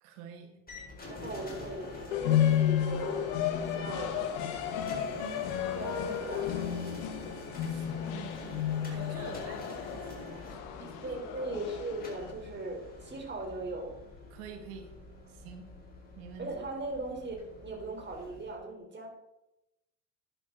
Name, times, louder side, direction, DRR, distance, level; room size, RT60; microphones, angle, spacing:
voice 1, 0.0-0.6 0.9-1.1 5.2-5.9 7.6-11.6 14.3-14.9 15.3-15.6 16.2-16.5, right 7 dB, 85° right, 4 dB, 1.8 m, -49 dB
sound 1, 0.7-18.5, left 2 dB, 20° left, 4.5 m, -46 dB
voice 2, 1.1-4.8 5.8-6.9 11.0-13.9 16.4-19.1, right 2 dB, 25° right, 1 dB, 4.0 m, -39 dB
sound 2, 2.1-12.3, left 10 dB, 80° left, 1.6 m, -32 dB
12.0 x 11.0 x 4.0 m, 0.90 s
supercardioid pair, 105°, 42 cm